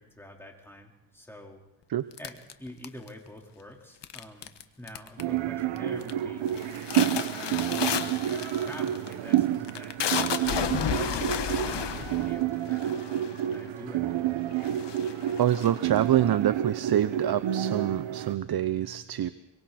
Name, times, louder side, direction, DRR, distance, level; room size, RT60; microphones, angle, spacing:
voice 1, 0.0-1.6 2.2-6.5 7.0-8.1 8.4-10.0 10.4-13.0 13.5-14.4, equal, 5° left, 0 dB, 4.1 m, -46 dB
sound 1, 2.2-3.3 4.0-4.6 4.9-5.4 5.8-6.1 6.5-13.5 14.2-14.3 14.6-16.2, left 9 dB, 65° left, 1.4 m, -32 dB
sound 2, 5.2-18.3, right 12 dB, 85° right, 1.0 m, -29 dB
voice 2, 15.4-19.3, right 11 dB, 55° right, 12 dB, 0.8 m, -26 dB
25.0 x 24.0 x 4.3 m, 0.94 s
cardioid pair, 95°, 45 cm